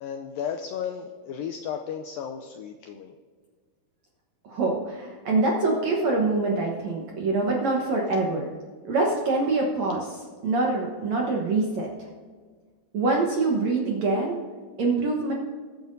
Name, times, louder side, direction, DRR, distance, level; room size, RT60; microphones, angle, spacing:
voice 1, 0.0-3.1, left 8 dB, 85° left, 5 dB, 2.0 m, -34 dB
voice 2, 4.4-8.4 8.8-10.2 10.4-11.9 12.9-14.4 14.8-15.3, right 3 dB, 65° right, -1 dB, 1.8 m, -25 dB
22.0 x 9.1 x 2.7 m, 1.5 s
omnidirectional pair, 4.7 m